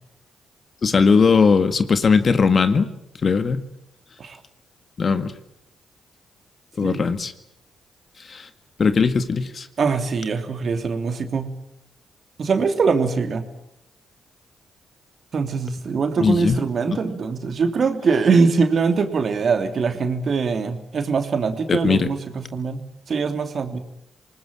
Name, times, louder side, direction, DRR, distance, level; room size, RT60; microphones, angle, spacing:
voice 1, 0.8-2.9 3.2-3.6 5.0-5.3 6.8-7.3 8.3-8.5 8.8-9.7 16.2-16.6 16.9-17.0 21.7-22.1, left 5 dB, 50° left, 10 dB, 1.9 m, -19 dB
voice 2, 6.8-7.1 9.8-11.5 12.4-13.4 15.3-22.8 23.1-23.8, right 5 dB, 55° right, 7 dB, 3.0 m, -22 dB
27.0 x 19.5 x 8.8 m, 0.81 s
hypercardioid pair, 40°, 0 cm